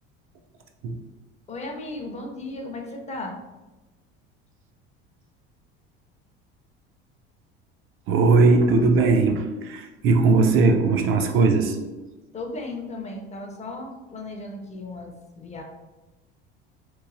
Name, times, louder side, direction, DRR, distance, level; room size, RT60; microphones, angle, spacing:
voice 1, 1.5-3.4 12.3-15.6, left 2 dB, 25° left, 2 dB, 0.4 m, -35 dB
voice 2, 8.1-11.8, right 3 dB, 45° right, 4 dB, 0.4 m, -19 dB
3.0 x 2.2 x 2.5 m, 1.1 s
supercardioid pair, 85°, 29 cm